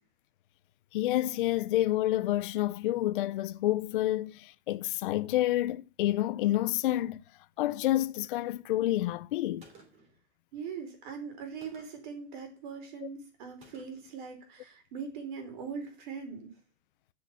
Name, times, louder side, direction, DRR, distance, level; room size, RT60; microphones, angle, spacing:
voice 1, 0.9-7.2 7.6-9.7 13.0-13.1, left 14 dB, 50° left, 0.5 m, -29 dB
Gunshot gunfire, 9.6-10.2 11.6-12.1 13.6-14.2, right 3 dB, 20° right, 2.9 m, -57 dB
voice 2, 10.5-16.5, right 6 dB, 45° right, 4.1 m, -41 dB
8.5 x 6.9 x 8.0 m
supercardioid pair, 170°, 34 cm